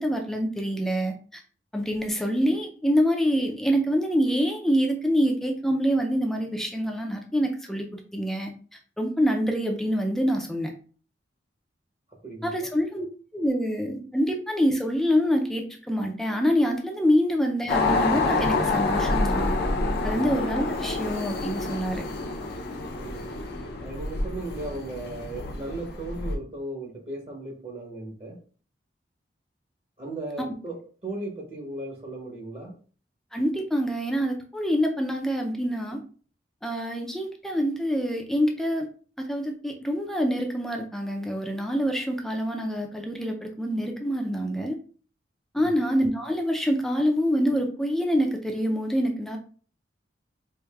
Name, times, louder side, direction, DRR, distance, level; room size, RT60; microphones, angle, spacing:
voice 1, 0.0-1.4 1.7-8.5 9.0-10.7 12.4-13.1 13.3-19.6 20.0-22.0 33.3-36.0 36.6-38.9 39.2-44.8 45.5-49.4, equal, ahead, 2 dB, 0.4 m, -26 dB
voice 2, 12.2-12.7 20.1-20.3 23.0-23.3 23.7-28.4 30.0-30.7 31.0-32.7 45.6-45.7, right 2 dB, 35° right, -1 dB, 0.9 m, -36 dB
sound 1, 17.7-26.3, left 3 dB, 55° left, 0.5 m, -28 dB
4.6 x 2.6 x 2.3 m, 0.41 s
head